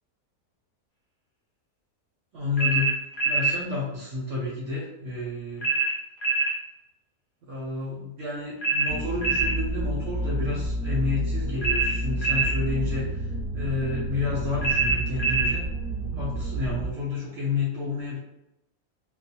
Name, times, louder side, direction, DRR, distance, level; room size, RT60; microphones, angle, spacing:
voice 1, 2.3-3.0 3.2-5.7 7.4-15.7 16.1-18.2, left 3 dB, 60° right, -5 dB, 0.7 m, -30 dB
sound 1, 2.6-3.6 5.6-6.6 8.6-9.6 11.6-12.6 14.6-15.6, right 4 dB, 55° left, 0.6 m, -24 dB
sound 2, 8.9-16.9, right 1 dB, 10° left, 0.8 m, -30 dB
2.4 x 2.1 x 2.7 m, 0.87 s
omnidirectional pair, 1.6 m